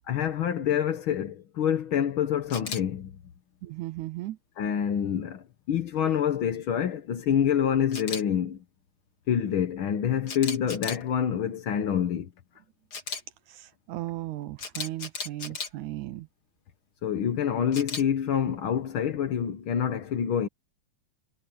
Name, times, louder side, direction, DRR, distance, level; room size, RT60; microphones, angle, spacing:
voice 1, 0.1-3.1 4.6-8.6 9.3-12.3 17.0-20.5, left 9 dB, 75° left, 1.2 m, -27 dB
Camera, 2.5-2.8 7.9-8.2 10.3-11.0 12.9-13.2 14.6-15.7 17.7-18.0, left 4 dB, 40° left, 3.8 m, -35 dB
voice 2, 3.6-4.4 13.5-16.3, right 16 dB, 75° right, 1.8 m, -36 dB
omnidirectional pair, 4.0 m